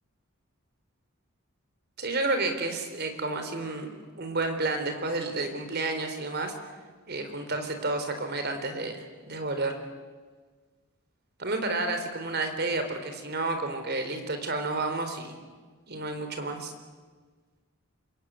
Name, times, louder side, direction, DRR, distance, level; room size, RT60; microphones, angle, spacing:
voice 1, 2.0-6.5 7.1-9.8 11.4-15.4 15.9-16.7, right 2 dB, 50° right, 6 dB, 3.9 m, -31 dB
26.5 x 23.0 x 9.5 m, 1.4 s
head